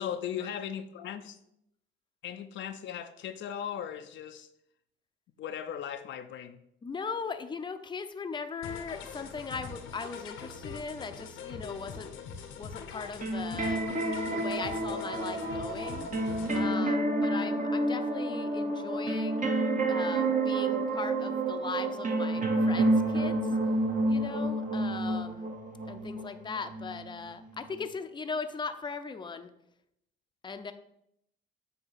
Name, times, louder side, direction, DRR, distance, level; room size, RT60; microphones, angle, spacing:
voice 1, 0.0-1.4 2.2-4.5 5.4-6.6, left 9 dB, 70° left, 0.5 m, -38 dB
voice 2, 6.8-12.1 12.6-13.8 14.3-19.6 19.9-23.5 24.0-25.5 25.9-29.5 30.4-30.7, left 5 dB, 25° left, 0.6 m, -39 dB
sound 1, 8.6-16.6, left 6 dB, 85° left, 0.9 m, -43 dB
sound 2, 13.2-27.8, right 2 dB, 40° right, 1.1 m, -29 dB
7.8 x 2.8 x 5.6 m
cardioid pair, 90°, 20 cm